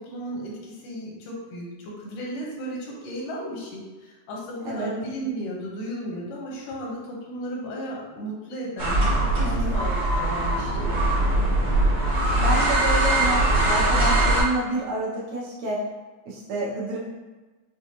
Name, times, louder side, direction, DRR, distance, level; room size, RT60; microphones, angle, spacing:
voice 1, 0.0-10.9, equal, 85° left, -2 dB, 2.4 m, -34 dB
sound 1, 8.8-14.4, right 1 dB, 55° right, 1.1 m, -21 dB
voice 2, 9.4-9.7 12.3-15.8 16.3-17.0, right 1 dB, 75° right, -5 dB, 1.9 m, -28 dB
6.2 x 2.3 x 2.8 m, 1.2 s
omnidirectional pair, 3.6 m